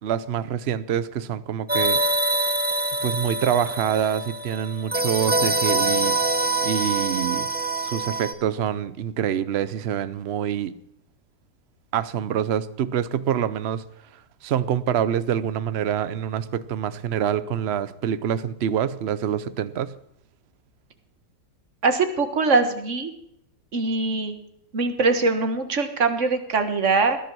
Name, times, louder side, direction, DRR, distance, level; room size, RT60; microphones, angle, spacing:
voice 1, 0.0-2.0 3.0-6.2 6.6-10.7 11.9-13.8 14.4-19.9, right 9 dB, 65° right, 0.6 m, -26 dB
sound 1, 1.7-8.3, right 2 dB, 10° right, 0.6 m, -25 dB
voice 2, 21.8-23.1 23.7-24.3 24.7-27.2, right 3 dB, 45° right, 1.7 m, -22 dB
18.5 x 10.5 x 6.2 m
omnidirectional pair, 2.0 m